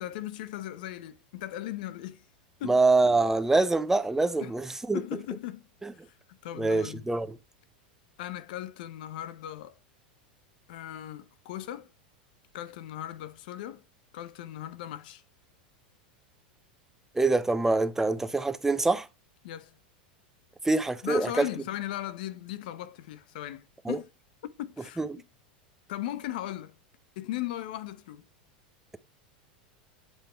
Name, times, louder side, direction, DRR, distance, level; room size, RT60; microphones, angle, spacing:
voice 1, 0.0-2.3 2.6-2.8 3.6-3.7 4.4-4.5 4.9-5.7 5.9-7.1 8.2-9.8 10.7-11.9 12.5-13.8 14.1-15.2 19.4-19.8 21.0-24.0 24.6-25.2 25.9-26.8 27.2-28.2, left 13 dB, 70° left, 0.8 m, -38 dB
voice 2, 2.6-5.0 5.8-5.9 6.6-7.4 17.1-19.1 20.6-21.5 23.9-24.0 25.0-25.2, right 3 dB, 10° right, 0.6 m, -25 dB
8.1 x 3.5 x 4.4 m
hypercardioid pair, 110°, 5 cm